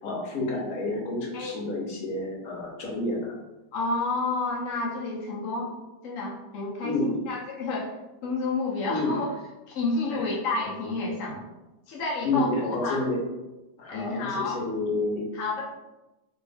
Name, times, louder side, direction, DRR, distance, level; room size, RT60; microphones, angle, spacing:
voice 1, 0.0-3.3 6.8-7.1 8.8-9.2 10.1-10.2 12.2-13.2 13.8-15.3, left 2 dB, 60° left, -2 dB, 1.0 m, -29 dB
voice 2, 3.7-5.7 6.0-8.0 8.2-9.3 9.7-11.5 11.9-13.0 13.9-14.6 15.3-15.7, left 3 dB, 85° left, -3 dB, 0.7 m, -30 dB
3.2 x 2.6 x 3.3 m, 1.0 s
omnidirectional pair, 2.2 m